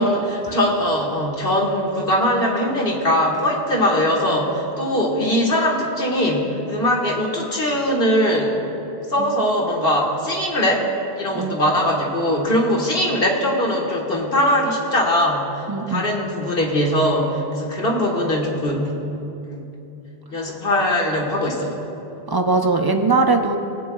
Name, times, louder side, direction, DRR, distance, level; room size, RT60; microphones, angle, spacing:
voice 1, 0.0-8.6 9.1-10.9 11.2-18.9 19.4-19.7 20.3-21.7, equal, 60° left, -1 dB, 1.6 m, -21 dB
voice 2, 15.7-16.1 20.4-20.5 22.3-23.6, right 3 dB, 30° right, 4 dB, 0.4 m, -21 dB
23.5 x 8.4 x 2.3 m, 2.9 s
omnidirectional pair, 1.1 m